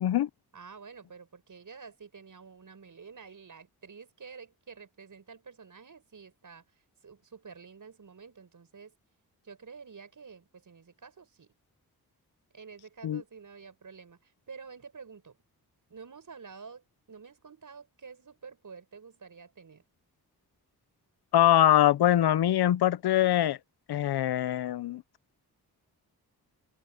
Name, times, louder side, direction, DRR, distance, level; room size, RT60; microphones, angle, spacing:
voice 1, 0.5-8.9 9.4-11.5 12.5-15.4 15.9-19.8, right 5 dB, 55° right, 6.5 m, -49 dB
voice 2, 21.3-23.6 23.9-25.0, left 12 dB, 80° left, 0.8 m, -23 dB
cardioid pair, 65°, 38 cm